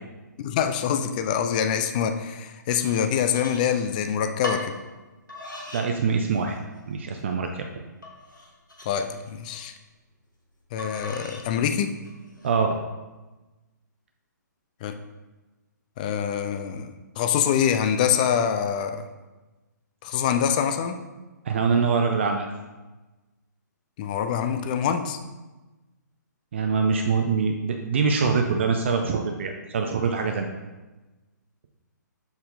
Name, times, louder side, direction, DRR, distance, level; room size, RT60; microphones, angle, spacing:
voice 1, 0.4-4.8 8.9-9.7 10.7-11.9 14.8-15.0 16.0-16.9 17.2-19.0 20.0-21.0 24.0-25.2, left 8 dB, 25° left, 8 dB, 0.4 m, -25 dB
sound 1, 2.8-4.0 4.4-4.7 5.3-5.9 6.3-6.8 7.3-7.4 8.0-9.6 10.8-11.5 12.0-12.5, left 1 dB, 80° left, 1.4 m, -38 dB
voice 2, 5.7-6.6 6.9-7.7 12.4-12.8 21.4-22.5 26.5-30.5, right 5 dB, 40° right, 4 dB, 0.5 m, -24 dB
7.1 x 4.2 x 3.7 m, 1.2 s
figure-of-eight pair, 130°, 10 cm